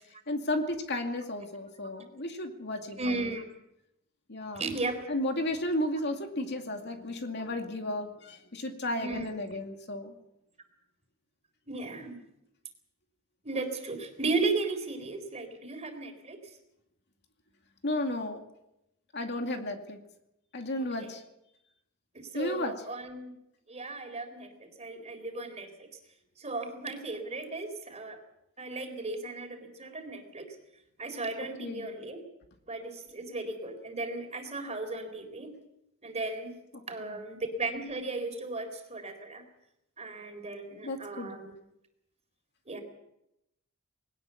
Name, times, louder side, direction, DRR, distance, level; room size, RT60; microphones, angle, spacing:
voice 1, 0.3-3.4 4.3-4.7 5.1-10.1 17.8-18.4 19.1-20.0 20.5-21.2 22.3-22.7 31.6-31.9 36.7-37.2 40.8-41.3, left 1 dB, 50° left, 4 dB, 2.4 m, -33 dB
voice 2, 3.0-3.4 4.5-5.0 9.0-9.3 11.7-12.2 13.4-16.4 21.0-21.1 22.1-23.3 23.7-25.9 26.4-28.2 28.6-30.6 31.0-32.2 32.7-35.5 36.0-36.6 36.9-39.4 40.0-41.5 42.7-42.8, right 3 dB, 30° right, 6 dB, 3.9 m, -35 dB
21.0 x 18.5 x 7.1 m, 0.85 s
head